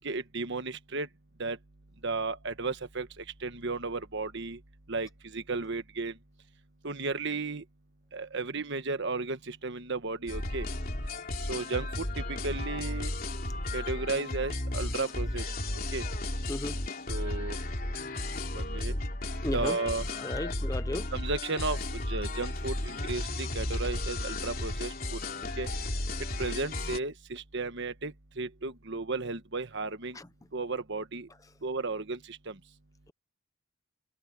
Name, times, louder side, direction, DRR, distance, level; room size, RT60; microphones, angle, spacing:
voice 1, 0.0-1.1 1.4-1.6 2.0-4.6 4.9-6.1 6.8-7.6 8.1-10.7 11.5-13.1 13.7-15.5 15.9-16.0 17.1-17.6 18.5-18.9 19.5-20.1 21.1-25.2 25.6-25.7 26.4-30.2 30.5-31.3 31.6-32.5, right 3 dB, 55° right, 1.4 m, -34 dB
sound 1, 10.3-27.0, left 1 dB, 45° left, 3.3 m, -34 dB
voice 2, 19.4-19.8 20.2-21.1 30.1-30.3, left 1 dB, 15° left, 0.7 m, -34 dB
head